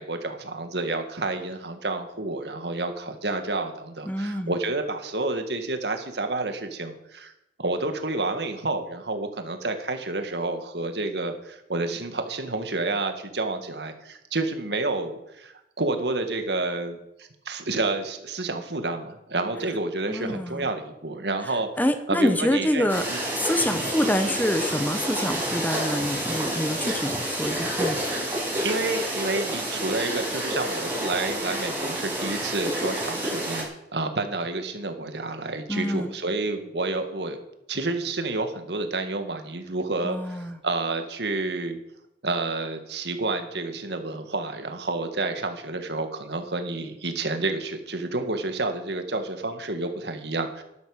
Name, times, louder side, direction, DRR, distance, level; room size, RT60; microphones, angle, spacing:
voice 1, 0.0-7.3 7.6-21.7 22.1-23.2 26.7-27.0 28.6-37.4 37.7-41.8 42.2-50.6, right 2 dB, 70° right, 7 dB, 1.8 m, -29 dB
voice 2, 4.1-4.6 20.1-20.7 21.8-23.0 23.3-28.0 35.7-36.1 40.0-40.6, left 1 dB, 10° left, 8 dB, 1.0 m, -26 dB
sound 1, 22.9-33.6, right 1 dB, 10° right, 5.6 m, -29 dB
12.0 x 12.0 x 6.5 m, 0.86 s
head